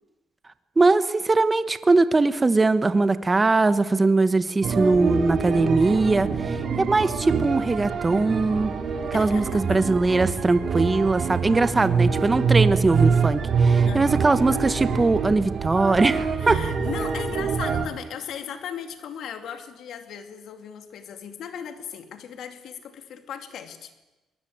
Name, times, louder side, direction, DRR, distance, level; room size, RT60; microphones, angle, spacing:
voice 1, 0.8-8.7 9.1-16.6, right 3 dB, 20° right, 12 dB, 1.1 m, -21 dB
sound 1, 4.6-17.9, right 5 dB, 50° right, 3.4 m, -25 dB
voice 2, 9.1-9.9 13.8-14.2 16.4-23.9, left 7 dB, 65° left, 7 dB, 2.5 m, -37 dB
23.0 x 20.0 x 8.7 m, 1.1 s
cardioid pair, 100°, 0 cm